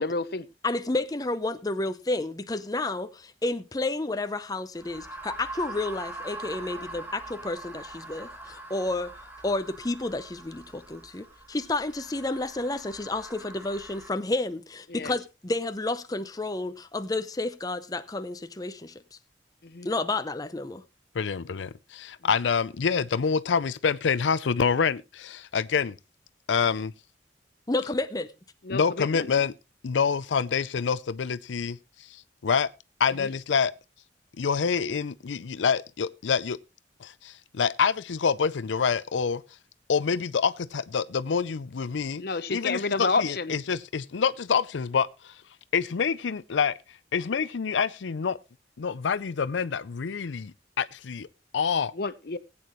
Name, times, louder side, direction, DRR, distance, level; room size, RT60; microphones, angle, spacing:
voice 1, 0.0-0.5 14.9-15.1 19.6-19.9 21.5-21.6 28.7-29.3 33.2-33.3 42.2-43.5 51.9-52.4, left 3 dB, 60° left, 0.8 m, -29 dB
voice 2, 0.6-9.2 9.4-19.0 19.8-20.8 27.7-28.3, left 2 dB, 20° left, 0.6 m, -31 dB
sound 1, 4.7-14.1, right 2 dB, 10° right, 1.6 m, -43 dB
voice 3, 21.2-26.0 26.5-26.9 28.7-29.5 29.8-31.8 32.4-32.7 33.0-33.7 34.4-36.6 37.0-39.4 39.9-42.2 42.5-45.3 45.7-46.7 47.1-48.4 48.8-51.3 51.5-51.9, left 6 dB, 85° left, 0.5 m, -26 dB
19.5 x 8.7 x 3.0 m
head